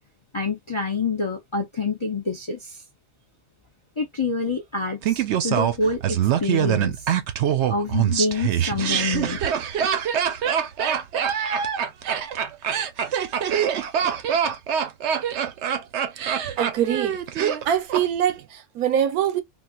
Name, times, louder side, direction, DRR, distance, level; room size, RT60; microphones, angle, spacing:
voice 1, 0.3-2.8 4.0-7.1 7.7-9.4, left 3 dB, 45° left, 0.4 m, -27 dB
Laughter, 5.0-18.0 18.3-18.4, right 9 dB, 60° right, 0.8 m, -24 dB
voice 2, 16.6-17.2 17.6-19.4, right 9 dB, 90° right, 1.2 m, -23 dB
3.8 x 2.4 x 2.3 m
omnidirectional pair, 1.5 m